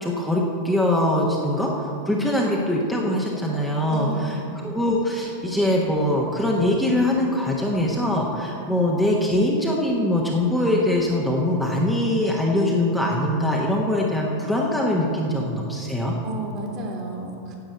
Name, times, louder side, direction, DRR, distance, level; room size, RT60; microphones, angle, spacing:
voice 1, 0.0-4.3 4.6-16.2, left 1 dB, ahead, -3 dB, 1.3 m, -22 dB
voice 2, 3.9-4.4 16.2-17.6, right 2 dB, 40° right, -1 dB, 2.7 m, -32 dB
10.5 x 7.8 x 7.9 m, 2.6 s
figure-of-eight pair, 90°, 0 cm